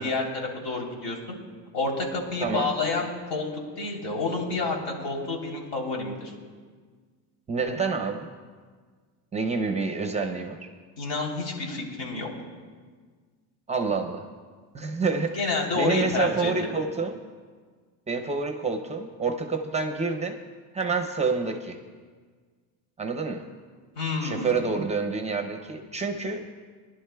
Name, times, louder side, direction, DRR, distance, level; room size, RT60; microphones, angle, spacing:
voice 1, 0.0-1.4 1.7-3.5 3.8-6.3 11.0-12.3 15.3-16.5 24.0-24.5, left 3 dB, 85° left, -1 dB, 3.5 m, -29 dB
voice 2, 2.4-2.7 7.5-8.3 9.3-10.7 13.7-14.2 14.7-17.2 18.1-20.4 20.7-21.8 23.0-23.5 24.2-26.4, right 4 dB, 15° right, 5 dB, 0.5 m, -28 dB
24.5 x 11.0 x 2.2 m, 1.6 s
cardioid pair, 135°, 46 cm